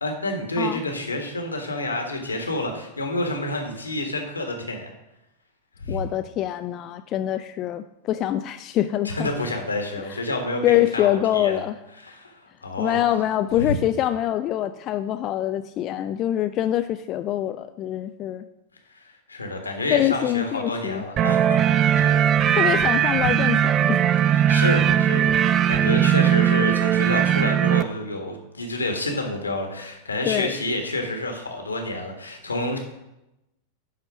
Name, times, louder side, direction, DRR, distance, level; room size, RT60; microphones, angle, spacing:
voice 1, 0.0-4.9 5.8-6.0 9.1-11.6 12.0-13.0 13.6-13.7 18.9-22.8 23.2-23.3 24.3-32.8, left 2 dB, 80° left, 3 dB, 1.6 m, -29 dB
voice 2, 5.9-9.3 10.6-11.7 12.8-18.5 19.9-21.0 22.5-24.1 26.2-26.5 30.3-30.5, left 12 dB, 35° left, 8 dB, 0.4 m, -24 dB
sound 1, 21.2-27.8, right 10 dB, 30° right, 0.4 m, -19 dB
10.5 x 4.4 x 5.9 m, 0.92 s
figure-of-eight pair, 90°, 0 cm